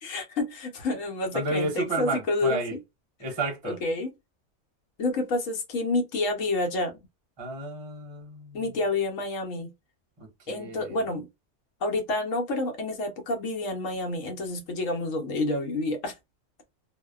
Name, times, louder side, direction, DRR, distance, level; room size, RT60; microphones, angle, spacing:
voice 1, 0.0-2.8 3.6-4.1 5.0-7.0 8.5-9.7 10.5-11.3 11.8-16.1, left 2 dB, 85° left, 1.2 m, -29 dB
voice 2, 1.3-2.8 3.2-3.8 7.4-8.6 10.2-11.0, right 2 dB, 25° right, 0.7 m, -32 dB
2.6 x 2.1 x 2.2 m
omnidirectional pair, 1.3 m